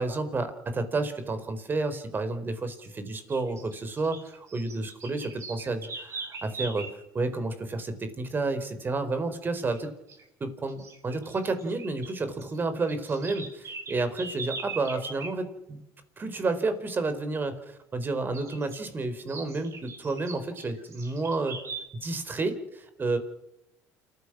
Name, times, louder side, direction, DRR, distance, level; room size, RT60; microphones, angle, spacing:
voice 1, 0.0-6.9 7.1-9.9 10.4-15.8 16.2-21.6 22.0-23.2, right 3 dB, 30° right, 10 dB, 4.2 m, -30 dB
sound 1, 2.7-2.9 3.3-7.0 9.6-9.8 10.1-10.2 10.7-12.1 12.4-15.3 18.3-18.8 19.3-21.9, right 4 dB, 45° right, 7.4 m, -41 dB
29.0 x 15.0 x 6.0 m, 0.84 s
supercardioid pair, 95°, 7 cm